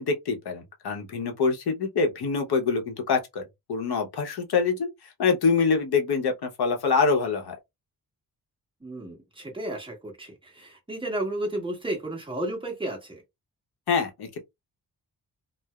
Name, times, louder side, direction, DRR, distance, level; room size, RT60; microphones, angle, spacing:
voice 1, 0.0-3.4 3.7-4.9 5.2-7.5 13.9-14.4, left 5 dB, 90° left, 0.9 m, -25 dB
voice 2, 8.8-13.2, right 1 dB, 15° right, 1.2 m, -33 dB
3.0 x 2.0 x 2.3 m
wide cardioid pair, 135°, 38 cm